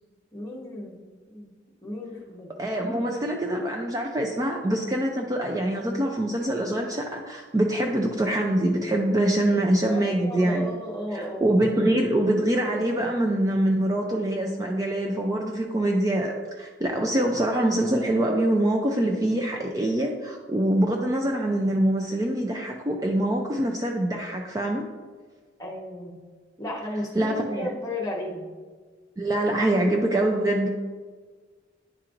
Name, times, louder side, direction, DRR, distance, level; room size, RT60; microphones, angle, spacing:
voice 1, 0.3-1.5 1.8-2.5 9.8-11.6 25.6-26.2 26.6-28.4, left 1 dB, 20° left, -2 dB, 1.1 m, -34 dB
voice 2, 2.6-10.7 11.1-16.3 16.6-24.9 27.1-27.7 29.2-30.7, right 1 dB, 20° right, 1 dB, 0.4 m, -24 dB
10.0 x 4.4 x 2.5 m, 1.5 s
head